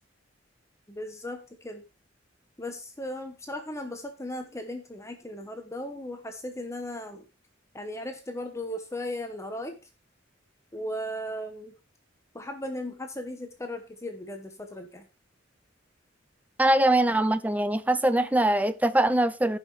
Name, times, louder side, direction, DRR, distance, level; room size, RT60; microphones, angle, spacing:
voice 1, 0.9-1.8 2.6-7.2 7.7-9.7 10.7-11.7 12.3-15.1, left 1 dB, 15° left, 1.0 m, -37 dB
voice 2, 16.6-19.6, right 1 dB, 10° right, 0.5 m, -22 dB
16.0 x 5.6 x 3.2 m
head